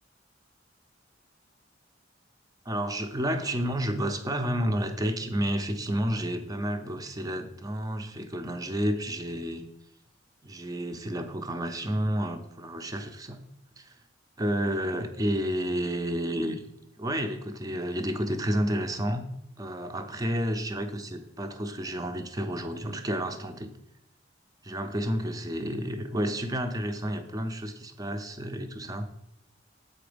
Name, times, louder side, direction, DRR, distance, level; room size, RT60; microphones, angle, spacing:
voice 1, 2.7-9.6 10.4-13.4 13.8-13.9 14.4-16.6 17.0-19.2 19.6-23.7 24.6-29.1, equal, 20° right, 7 dB, 0.6 m, -30 dB
6.9 x 4.4 x 5.0 m, 0.80 s
head